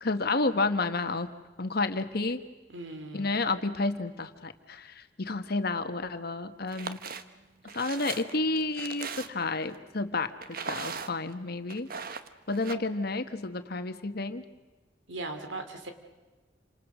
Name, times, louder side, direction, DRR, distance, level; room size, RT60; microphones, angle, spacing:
voice 1, 0.0-1.3 1.6-2.4 3.1-7.0 7.7-11.9 12.5-14.4, left 3 dB, 55° left, 9 dB, 1.5 m, -30 dB
voice 2, 2.7-3.4 8.2-8.6 15.1-15.9, right 2 dB, 85° right, 7 dB, 3.0 m, -40 dB
sound 1, 6.6-7.2 7.7-9.6 10.4-11.3 11.7-12.7, right 5 dB, 55° right, 1.2 m, -38 dB
29.0 x 26.5 x 6.3 m, 1.2 s
head